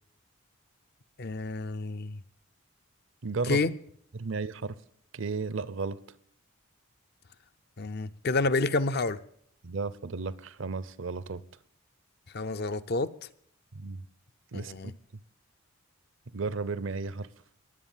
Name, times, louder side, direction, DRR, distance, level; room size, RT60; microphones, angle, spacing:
voice 1, 1.2-2.2 3.5-3.7 7.8-9.2 12.3-13.1 14.5-14.9, left 3 dB, 50° left, 0.6 m, -29 dB
voice 2, 3.2-3.6 4.1-4.8 5.1-6.0 9.6-11.4 13.7-14.0 14.5-14.9 16.3-17.3, right 4 dB, 60° right, 0.6 m, -34 dB
21.0 x 7.9 x 7.3 m
head